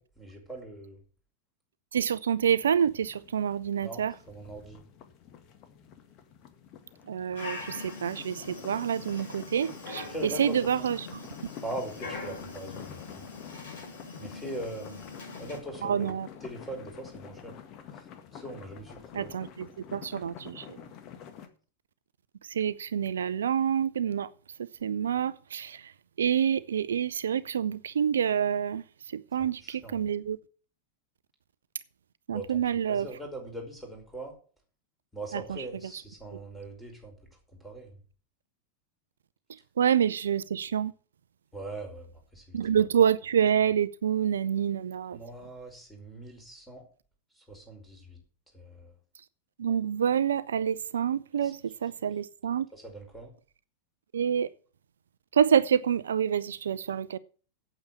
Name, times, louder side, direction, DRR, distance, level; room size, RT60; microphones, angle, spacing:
voice 1, 0.2-1.0 3.8-4.8 10.1-10.7 11.6-13.2 14.2-15.0 15.4-16.1 16.4-17.5 18.0-18.1 18.3-19.3 29.6-30.0 32.3-34.3 35.1-37.1 37.6-37.9 41.5-42.6 45.1-46.8 47.5-48.2 48.5-48.9 51.4-51.5 52.7-53.3, right 1 dB, 5° left, 5.4 m, -41 dB
voice 2, 1.9-4.1 7.1-11.2 15.8-16.3 19.1-20.8 22.5-24.3 24.6-25.9 26.2-28.8 29.3-30.4 32.3-33.1 35.3-35.6 35.9-36.0 39.8-40.9 42.5-45.2 49.6-52.7 54.1-54.5 55.3-57.2, right 8 dB, 65° right, 0.4 m, -27 dB
sound 1, 2.6-21.5, left 8 dB, 35° left, 1.8 m, -48 dB
Dog, 7.3-15.6, left 3 dB, 55° left, 6.4 m, -43 dB
8.7 x 8.2 x 8.3 m
figure-of-eight pair, 90°, 0 cm